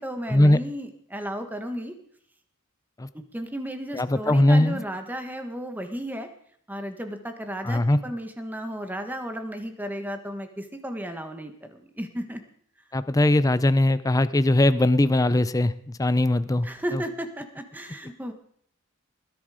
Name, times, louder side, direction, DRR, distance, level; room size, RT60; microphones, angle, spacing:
voice 1, 0.0-2.0 3.3-6.3 6.7-12.4 16.6-18.3, equal, 10° right, 7 dB, 1.5 m, -34 dB
voice 2, 3.9-4.8 7.6-8.0 12.9-17.0, left 1 dB, 15° left, 14 dB, 0.5 m, -20 dB
20.5 x 11.0 x 5.0 m, 0.62 s
head